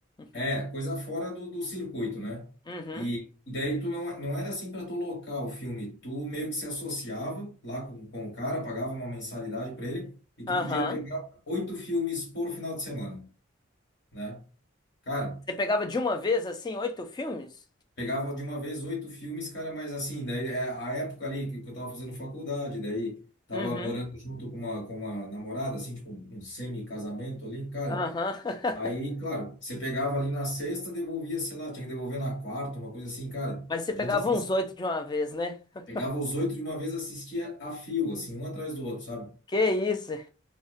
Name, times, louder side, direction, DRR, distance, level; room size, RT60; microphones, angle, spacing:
voice 1, 0.3-2.5 2.9-10.1 10.4-13.3 14.1-14.4 15.0-15.4 18.0-23.2 23.5-28.1 28.7-34.2 35.9-39.3, left 1 dB, 60° left, 1.3 m, -33 dB
voice 2, 2.7-3.1 10.5-11.0 15.6-17.5 23.5-23.9 27.9-28.8 33.7-35.8 39.5-40.3, left 3 dB, 20° left, 0.3 m, -29 dB
2.5 x 2.1 x 2.5 m
head